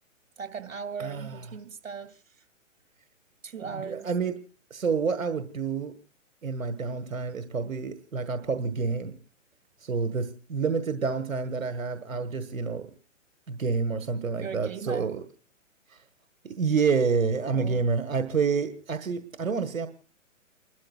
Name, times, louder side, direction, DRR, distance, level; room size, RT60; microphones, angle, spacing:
voice 1, 0.4-2.2 3.4-4.1 14.3-15.1 17.4-17.8, right 6 dB, 70° right, 8 dB, 2.5 m, -38 dB
voice 2, 1.0-1.4 3.6-4.3 4.7-5.9 6.4-9.1 9.8-12.9 13.5-15.2 16.6-19.9, right 5 dB, 90° right, 9 dB, 1.5 m, -28 dB
29.5 x 13.0 x 2.4 m, 0.37 s
hypercardioid pair, 130°, 39 cm